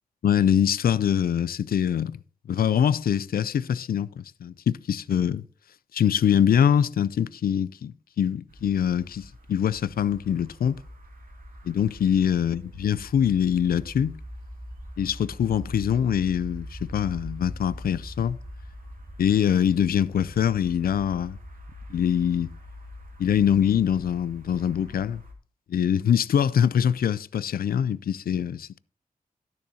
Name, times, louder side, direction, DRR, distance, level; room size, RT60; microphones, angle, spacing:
voice 1, 0.2-2.2 2.5-5.4 5.9-10.8 11.6-14.2 15.0-18.4 19.2-21.4 21.9-22.5 23.2-25.2 25.7-28.8, left 9 dB, 85° left, 0.4 m, -24 dB
sound 1, 8.5-25.3, equal, 70° right, 2.6 m, -43 dB
12.0 x 10.5 x 2.8 m
cardioid pair, 65°, 15 cm